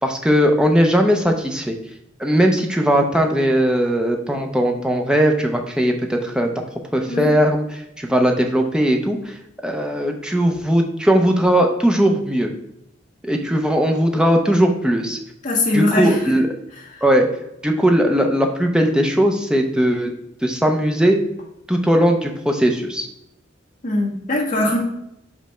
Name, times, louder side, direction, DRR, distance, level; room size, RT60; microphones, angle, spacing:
voice 1, 0.0-1.8 2.2-6.5 6.9-9.4 9.6-12.5 13.2-15.2 15.7-16.5 17.0-17.3 17.6-20.1 20.4-21.2 21.7-23.1, equal, 5° right, 3 dB, 0.6 m, -18 dB
voice 2, 15.4-16.2 23.8-24.8, left 2 dB, 40° left, -3 dB, 1.5 m, -20 dB
5.2 x 3.4 x 5.5 m, 0.81 s
head